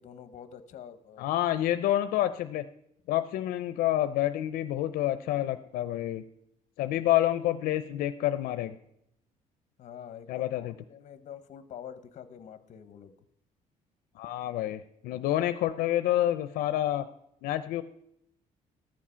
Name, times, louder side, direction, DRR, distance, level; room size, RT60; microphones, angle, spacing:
voice 1, 0.0-1.3 9.8-13.1, left 8 dB, 55° left, 12 dB, 0.9 m, -46 dB
voice 2, 1.2-2.6 3.1-6.2 6.8-8.8 10.3-10.7 14.2-17.1 17.4-17.8, left 13 dB, 85° left, 11 dB, 0.5 m, -28 dB
14.0 x 7.4 x 5.6 m, 0.78 s
cardioid pair, 145°, 14 cm